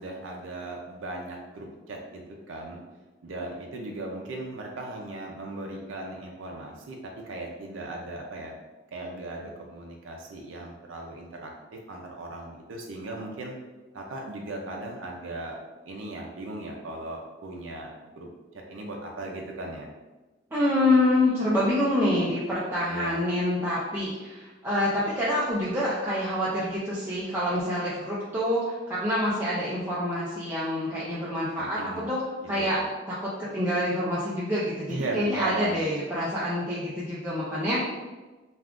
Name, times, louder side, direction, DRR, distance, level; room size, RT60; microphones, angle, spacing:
voice 1, 0.0-2.8 3.2-8.5 8.9-13.5 13.9-15.6 15.8-18.3 18.5-19.9 22.9-23.2 31.6-32.1 32.5-32.8 34.9-35.9, right 2 dB, 80° right, 1 dB, 0.4 m, -37 dB
voice 2, 20.5-32.2 32.5-32.8 33.1-37.8, left 1 dB, 10° right, -9 dB, 0.4 m, -26 dB
2.4 x 2.3 x 3.5 m, 1.2 s
head